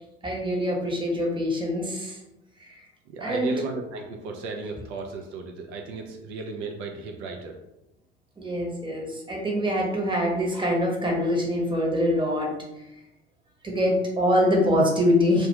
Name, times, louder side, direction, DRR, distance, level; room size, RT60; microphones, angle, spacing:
voice 1, 0.2-2.2 2.6-2.8 3.2-3.5 8.4-12.5 13.6-15.5, equal, 15° right, -1 dB, 0.9 m, -24 dB
voice 2, 3.1-7.6, right 3 dB, 75° right, 2 dB, 0.5 m, -35 dB
2.3 x 2.2 x 2.8 m, 0.91 s
hypercardioid pair, 55°, 34 cm